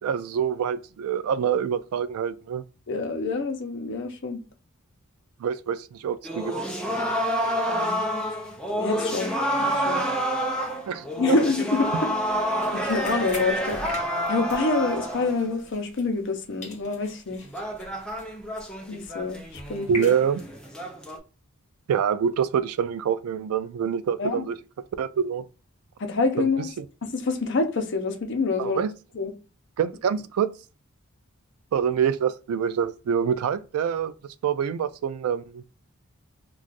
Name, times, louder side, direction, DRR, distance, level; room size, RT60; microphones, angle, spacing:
voice 1, 0.0-2.6 5.4-6.5 10.9-11.4 19.9-20.4 21.9-24.6 25.0-25.4 26.4-26.5 26.8-26.9 28.6-28.9 29.8-30.5 31.7-34.1 34.4-35.6, right 7 dB, 85° right, 0.3 m, -26 dB
voice 2, 2.9-4.4 7.7-8.0 8.8-9.3 9.6-10.0 11.2-11.9 12.7-13.8 14.3-17.4 18.9-20.1 24.2-24.4 26.0-26.7 27.0-28.8 29.1-29.3, left 3 dB, 55° left, 0.6 m, -27 dB
sound 1, 6.2-15.5 17.3-21.2, equal, 5° left, 0.4 m, -28 dB
sound 2, 12.2-16.4 16.6-20.7, left 1 dB, 30° left, 1.0 m, -44 dB
2.5 x 2.3 x 3.9 m
head